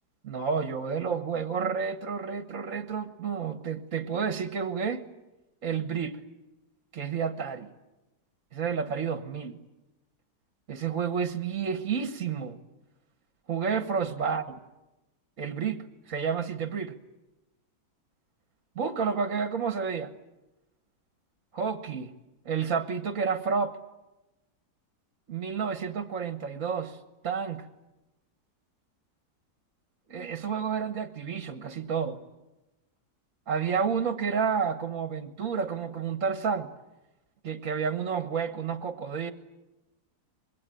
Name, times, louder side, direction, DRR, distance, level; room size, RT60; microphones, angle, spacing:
voice 1, 0.2-5.0 5.6-6.2 6.9-7.7 8.5-9.6 10.7-12.6 13.5-14.4 15.4-17.0 18.7-20.1 21.5-22.1 22.4-23.8 25.3-27.0 27.2-27.7 30.1-32.2 33.5-36.7 37.4-39.3, right 6 dB, 50° right, 8 dB, 1.6 m, -30 dB
25.5 x 22.0 x 9.1 m, 1.0 s
omnidirectional pair, 1.8 m